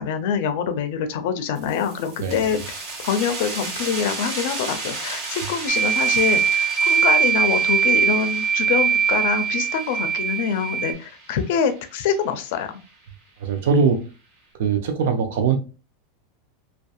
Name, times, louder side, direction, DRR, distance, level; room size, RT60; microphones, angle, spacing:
voice 1, 0.0-2.6 3.0-12.7, left 7 dB, 65° left, 0.5 m, -25 dB
sound 1, 1.6-12.9, right 3 dB, 50° right, 1.1 m, -35 dB
sound 2, 5.7-10.9, right 7 dB, 20° right, 0.4 m, -21 dB
voice 2, 13.4-14.0 14.6-15.6, right 5 dB, 75° right, 0.5 m, -21 dB
2.7 x 2.2 x 2.3 m
supercardioid pair, 120°, 0 cm